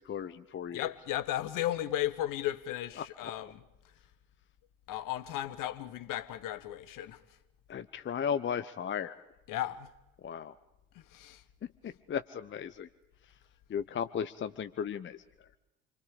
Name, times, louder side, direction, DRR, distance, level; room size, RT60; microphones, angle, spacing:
voice 1, 0.0-0.9 3.0-3.5 7.7-9.2 10.2-10.6 11.6-12.9 13.7-15.2, left 8 dB, 30° left, 0.9 m, -36 dB
voice 2, 0.7-3.5 4.9-7.2 9.5-9.9 11.1-11.4, left 13 dB, 50° left, 1.4 m, -35 dB
28.0 x 23.5 x 5.1 m
figure-of-eight pair, 55°, 42 cm